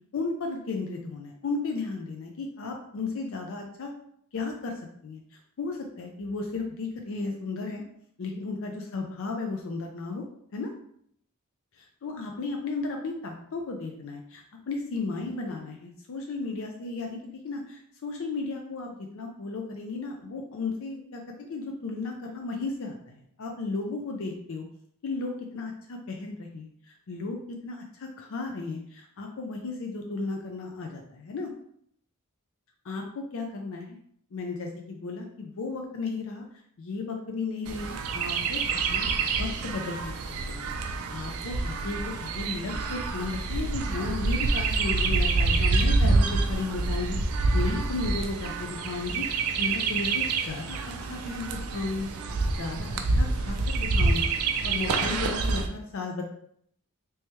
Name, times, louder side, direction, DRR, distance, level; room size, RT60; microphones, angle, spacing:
voice 1, 0.1-3.9 4.3-7.8 8.2-10.2 10.5-10.7 11.8-24.6 25.0-26.7 27.1-31.5 32.8-34.0 34.3-36.5 36.8-47.2 47.5-52.1 52.6-54.3 54.6-56.2, left 3 dB, 65° left, 2 dB, 0.4 m, -34 dB
Chirp tweet, 37.7-55.7, right 3 dB, 75° right, 0.4 m, -27 dB
3.3 x 3.1 x 3.0 m, 0.68 s
head